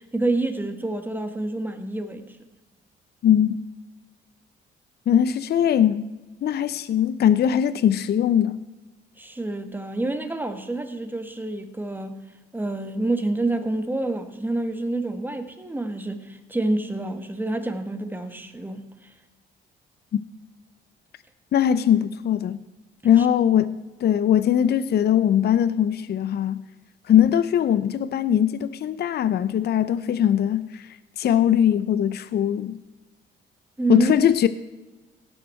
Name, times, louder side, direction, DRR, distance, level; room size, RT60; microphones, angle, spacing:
voice 1, 0.0-2.4 9.2-12.2 12.5-18.8 23.2-23.3 33.8-34.1, right 2 dB, 10° right, 1.4 m, -28 dB
voice 2, 3.2-3.6 5.1-6.1 6.4-8.6 20.1-20.2 21.5-22.6 23.0-26.6 27.1-30.9 31.2-32.8 33.9-34.5, left 10 dB, 55° left, 0.6 m, -20 dB
17.5 x 7.5 x 4.4 m
cardioid pair, 90°, 20 cm